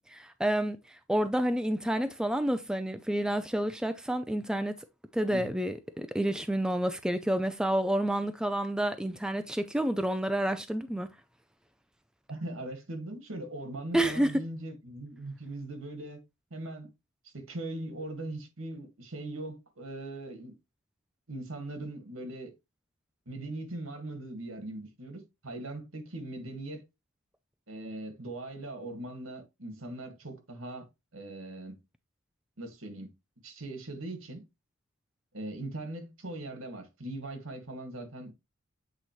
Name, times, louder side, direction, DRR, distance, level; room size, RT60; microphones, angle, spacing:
voice 1, 0.1-4.8 5.1-11.1 13.9-14.3, right 1 dB, 5° right, 0.4 m, -29 dB
voice 2, 12.3-16.2 16.5-16.9 17.2-20.6 21.3-22.5 23.3-26.8 27.7-30.9 31.1-31.8 32.6-33.1 33.4-34.4 35.3-38.3, right 2 dB, 75° right, 1.7 m, -40 dB
8.0 x 4.1 x 3.0 m
head